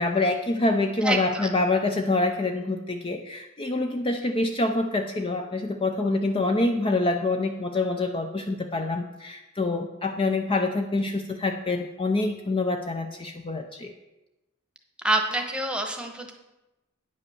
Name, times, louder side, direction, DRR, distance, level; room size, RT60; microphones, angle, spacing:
voice 1, 0.0-13.9, left 2 dB, 25° left, 4 dB, 0.5 m, -26 dB
voice 2, 1.0-1.5 15.0-16.3, right 2 dB, 5° right, 3 dB, 1.1 m, -26 dB
9.6 x 5.4 x 7.0 m, 1.0 s
head